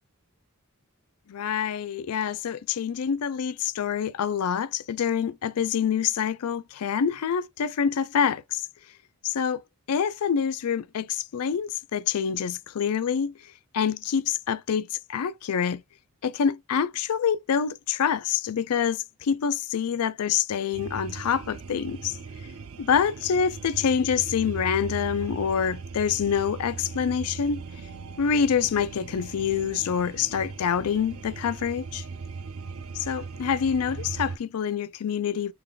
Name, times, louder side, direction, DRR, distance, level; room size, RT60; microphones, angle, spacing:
voice 1, 1.3-8.7 9.2-9.6 9.9-13.3 13.7-15.8 16.2-22.2 22.8-27.6 28.2-32.0 32.9-35.5, left 7 dB, 85° left, 0.4 m, -26 dB
sound 1, 20.7-34.4, right 4 dB, 65° right, 0.4 m, -39 dB
3.5 x 2.4 x 3.7 m
head